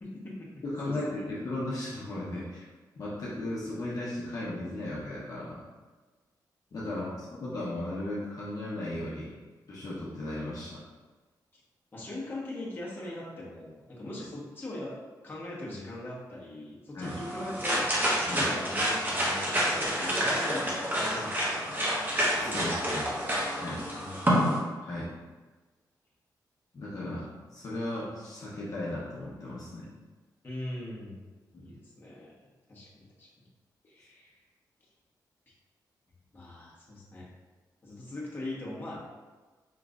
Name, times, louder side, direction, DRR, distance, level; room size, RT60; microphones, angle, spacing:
voice 1, 0.0-0.5 0.8-1.2 6.8-7.2 11.5-11.6 11.9-15.0 15.2-17.9 18.3-21.9 22.4-22.9 23.9-24.5 30.4-31.2 31.6-33.3 33.9-34.4 36.3-37.3 37.8-39.0, left 1 dB, 30° left, -6 dB, 1.1 m, -41 dB
voice 2, 0.6-2.6 3.0-5.6 6.7-9.3 9.7-10.8 16.9-17.1 18.3-18.5 22.4-23.1 23.5-23.8 24.8-25.1 26.7-29.9 31.5-31.7, left 1 dB, 50° left, -7 dB, 0.9 m, -36 dB
sound 1, 17.0-24.6, equal, 25° right, 1.0 m, -28 dB
5.0 x 3.1 x 2.5 m, 1.3 s
wide cardioid pair, 115°, 7 cm